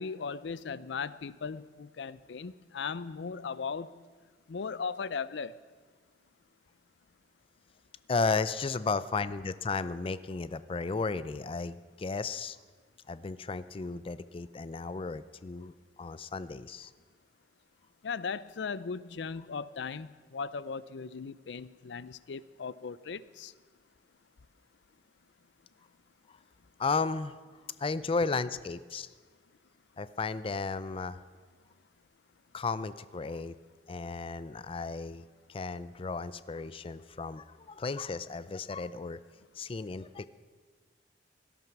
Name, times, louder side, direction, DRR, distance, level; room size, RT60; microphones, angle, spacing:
voice 1, 0.0-3.9 4.5-5.6 18.0-23.5, left 5 dB, 85° left, 17 dB, 0.5 m, -38 dB
voice 2, 8.1-12.6 13.1-15.7 16.0-16.9 26.8-27.4 27.8-29.1 30.0-31.2 32.5-33.5 33.9-35.2 35.5-39.2 39.5-40.3, left 4 dB, 30° left, 15 dB, 0.4 m, -34 dB
17.5 x 12.5 x 6.0 m, 1.5 s
head